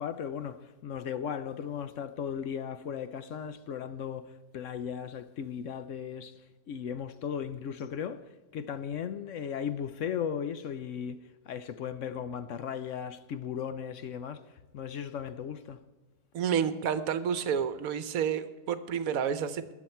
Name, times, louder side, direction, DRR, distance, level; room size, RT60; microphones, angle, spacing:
voice 1, 0.0-15.8, left 8 dB, 65° left, 0.9 m, -37 dB
voice 2, 16.3-19.7, right 8 dB, 70° right, 1.2 m, -30 dB
20.5 x 7.2 x 4.4 m
omnidirectional pair, 1.6 m